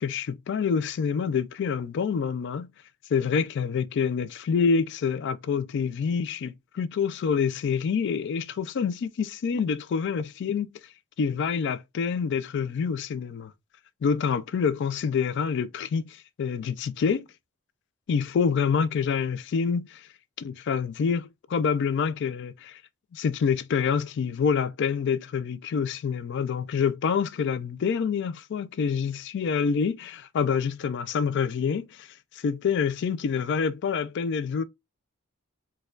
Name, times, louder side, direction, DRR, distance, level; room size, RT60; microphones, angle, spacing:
voice 1, 0.0-2.7 3.1-10.7 11.2-13.5 14.0-17.3 18.1-20.1 20.4-22.8 23.1-32.1 32.3-34.6, left 6 dB, 55° left, 0.3 m, -27 dB
4.3 x 2.2 x 2.3 m
head